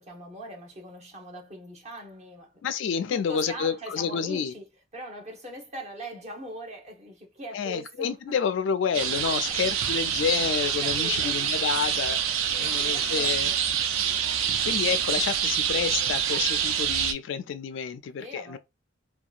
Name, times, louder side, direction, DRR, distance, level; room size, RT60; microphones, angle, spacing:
voice 1, 0.0-2.6 3.1-4.7 4.9-8.4 9.3-9.6 10.8-11.4 12.5-13.6 18.2-18.6, right 1 dB, 35° right, 0.8 m, -41 dB
voice 2, 2.6-4.5 7.5-13.5 14.6-18.6, left 7 dB, 60° left, 0.3 m, -29 dB
sound 1, 8.9-17.1, right 9 dB, 75° right, 0.4 m, -26 dB
2.7 x 2.2 x 2.4 m
head